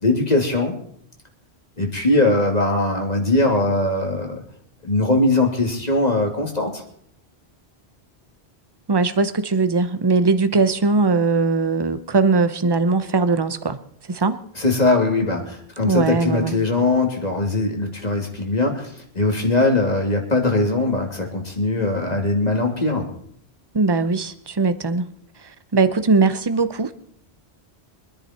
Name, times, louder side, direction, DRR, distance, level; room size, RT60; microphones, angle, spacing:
voice 1, 0.0-0.7 1.8-4.4 4.8-6.8 14.6-23.1, left 2 dB, 40° left, 2 dB, 2.7 m, -21 dB
voice 2, 8.9-13.8 14.1-14.4 15.8-16.6 23.7-25.1 25.4-26.9, right 4 dB, 25° right, 11 dB, 0.8 m, -20 dB
24.5 x 10.5 x 4.3 m, 0.64 s
omnidirectional pair, 1.1 m